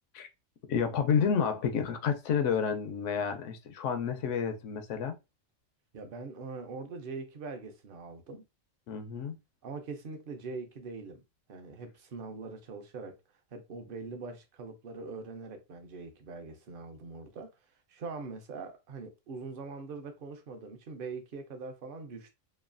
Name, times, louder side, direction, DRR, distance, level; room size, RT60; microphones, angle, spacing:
voice 1, 0.7-5.2 8.9-9.4, left 7 dB, 80° left, 0.9 m, -30 dB
voice 2, 5.9-8.4 9.6-11.2 11.5-13.2 13.5-17.5 17.9-22.3, right 4 dB, 55° right, 0.7 m, -42 dB
3.1 x 2.2 x 2.4 m
omnidirectional pair, 1.2 m